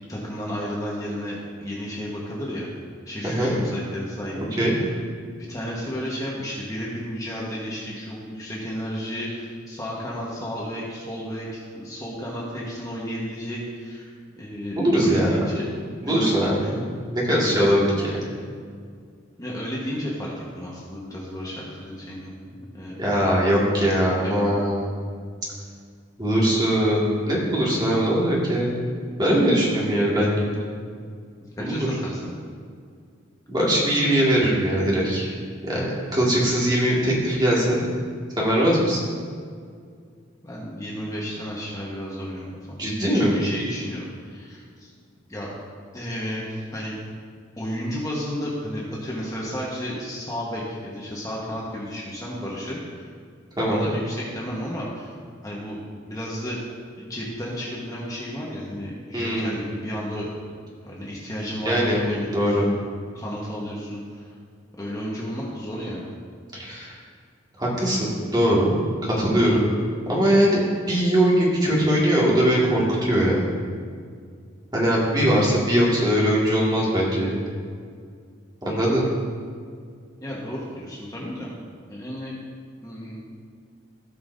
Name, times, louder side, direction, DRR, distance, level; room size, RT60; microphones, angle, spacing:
voice 1, 0.1-2.7 3.1-4.9 5.4-15.7 16.0-16.5 19.4-23.0 24.2-24.6 31.6-32.3 40.4-44.9 45.3-45.5 45.9-47.0 47.6-53.1 53.7-55.1 55.4-55.8 56.0-56.6 57.0-60.3 60.8-62.8 63.1-64.3 64.8-66.1 80.2-81.5 81.9-82.4 82.8-83.2, equal, 20° left, -5 dB, 1.3 m, -32 dB
voice 2, 3.2-3.5 4.6-4.7 14.7-15.3 16.0-16.6 17.1-18.3 23.0-24.9 26.2-28.9 29.2-30.5 31.6-31.9 33.5-35.3 35.6-37.8 38.4-39.0 42.8-43.3 53.6-53.9 59.1-59.5 61.7-62.0 62.3-62.6 66.5-66.9 67.6-69.6 70.1-70.6 70.9-73.5 74.7-77.4 78.6-79.0, equal, 20° right, -6 dB, 2.1 m, -21 dB
16.5 x 5.6 x 2.7 m, 2.1 s
head